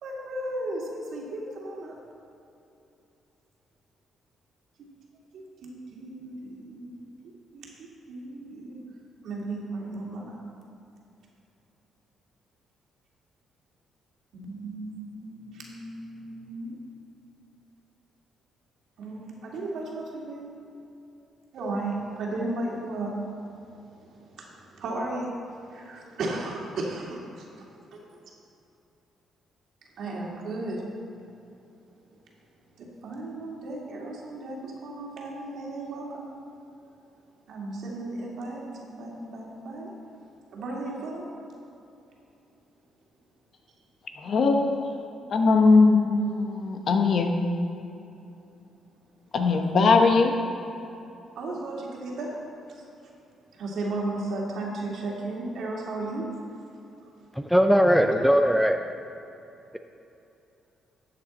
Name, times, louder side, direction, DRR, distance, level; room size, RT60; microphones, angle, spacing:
voice 1, 0.0-1.9 5.3-6.9 7.5-7.7 8.1-8.8 9.2-10.4 14.3-16.8 19.0-20.5 21.5-23.2 23.8-25.3 25.7-27.4 27.9-28.0 30.0-30.8 32.8-36.3 37.5-39.9 40.5-41.2 49.4-49.6 51.4-52.4 52.7-52.8 53.5-56.3, right 2 dB, 70° right, -2 dB, 2.3 m, -35 dB
voice 2, 44.2-44.9 45.3-47.4 49.3-50.3, left 4 dB, 55° left, 4 dB, 1.1 m, -20 dB
voice 3, 57.3-58.8, equal, ahead, 6 dB, 0.5 m, -20 dB
12.5 x 7.6 x 4.2 m, 2.8 s
cardioid pair, 90°, 0 cm